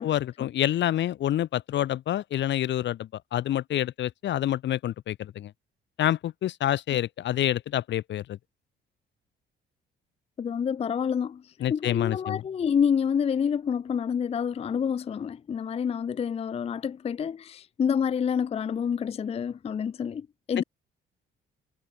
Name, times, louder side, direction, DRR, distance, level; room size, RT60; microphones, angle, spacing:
voice 1, 0.0-5.5 6.0-8.4 11.6-12.4, left 12 dB, 65° left, 0.8 m, -27 dB
voice 2, 10.4-11.4 11.7-20.6, left 7 dB, 30° left, 0.4 m, -28 dB
cardioid pair, 90°, 20 cm